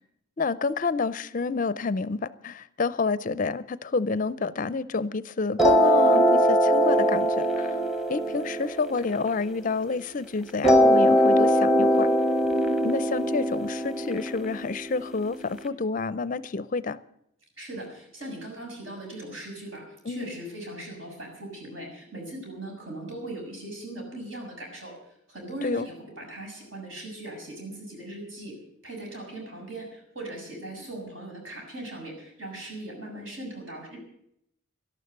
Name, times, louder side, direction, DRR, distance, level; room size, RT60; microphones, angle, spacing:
voice 1, 0.4-7.8 8.1-12.1 12.8-17.0 20.1-20.4 25.6-25.9, left 4 dB, 40° left, 16 dB, 0.5 m, -29 dB
sound 1, 5.6-10.0 10.6-15.6, equal, ahead, 1.0 m, -22 dB
voice 2, 17.6-24.9 25.3-28.6 28.8-34.0, right 1 dB, 65° right, 0 dB, 6.8 m, -39 dB
12.5 x 12.0 x 7.9 m, 0.74 s
head